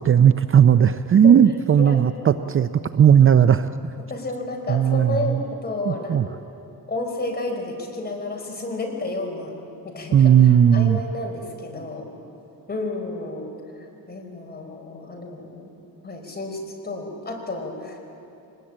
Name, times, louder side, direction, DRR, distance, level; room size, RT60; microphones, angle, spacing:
voice 1, 0.0-3.7 4.7-5.4 5.9-6.3 10.1-11.0, right 8 dB, 35° right, 11 dB, 0.5 m, -16 dB
voice 2, 4.1-6.2 6.9-9.5 9.8-12.1 12.7-13.5 13.8-15.7 16.0-18.0, left 2 dB, 25° left, 1 dB, 4.9 m, -31 dB
24.0 x 20.0 x 8.8 m, 2.7 s
cardioid pair, 115°, 35 cm